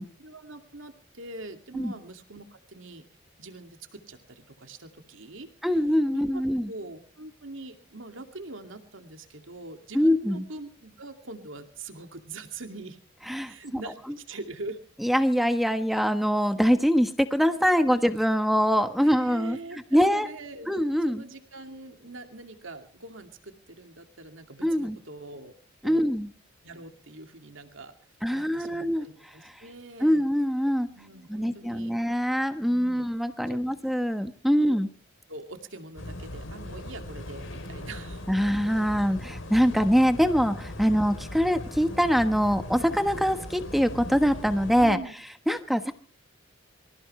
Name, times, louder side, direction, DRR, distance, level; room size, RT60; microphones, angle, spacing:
voice 1, 0.2-3.0 3.4-5.5 6.1-6.4 6.7-13.0 13.4-14.8 19.0-25.5 25.8-26.1 26.6-27.9 28.3-30.3 30.9-32.0 32.6-33.0 33.5-33.8 34.6-34.7 35.3-38.3 44.8-45.1, right 2 dB, 75° right, 6 dB, 2.5 m, -43 dB
voice 2, 5.6-6.7 9.9-10.5 13.3-13.8 15.0-19.6 19.9-20.3 20.7-21.2 24.6-25.0 25.8-26.3 28.2-29.5 30.0-30.9 31.3-34.9 38.3-45.0 45.5-45.9, equal, ahead, 8 dB, 1.2 m, -24 dB
sound 1, 36.0-44.9, left 1 dB, 75° left, 3.5 m, -39 dB
25.5 x 16.0 x 3.3 m, 0.43 s
head